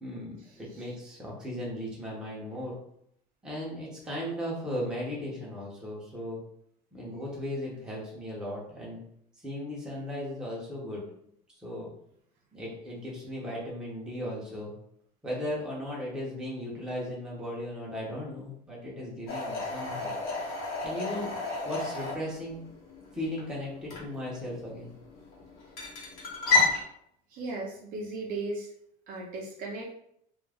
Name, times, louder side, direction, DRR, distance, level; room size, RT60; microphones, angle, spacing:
voice 1, 0.0-2.8 3.4-6.4 6.9-9.0 9.4-11.0 11.6-11.9 12.5-14.7 15.2-20.1 20.4-20.5 20.8-21.3 21.6-22.6 23.1-24.9, left 1 dB, 5° right, -5 dB, 0.6 m, -36 dB
sound 1, 19.3-26.8, left 4 dB, 55° left, 0.9 m, -32 dB
voice 2, 27.3-28.7 29.1-29.9, right 2 dB, 50° right, -1 dB, 0.6 m, -36 dB
2.3 x 2.1 x 3.3 m, 0.70 s
cardioid pair, 170°, 19 cm